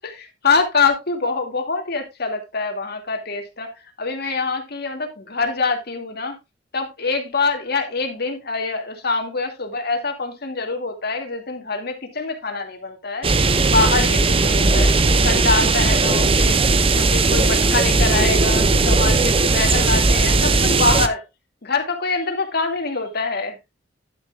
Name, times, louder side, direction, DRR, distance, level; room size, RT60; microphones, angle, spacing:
voice 1, 0.0-3.7 4.0-6.4 6.7-14.9 15.2-16.6 17.0-21.2 21.6-23.6, left 4 dB, 55° left, 2.3 m, -24 dB
sound 1, 13.2-21.1, right 3 dB, 30° right, 0.8 m, -17 dB
11.0 x 10.0 x 2.4 m
head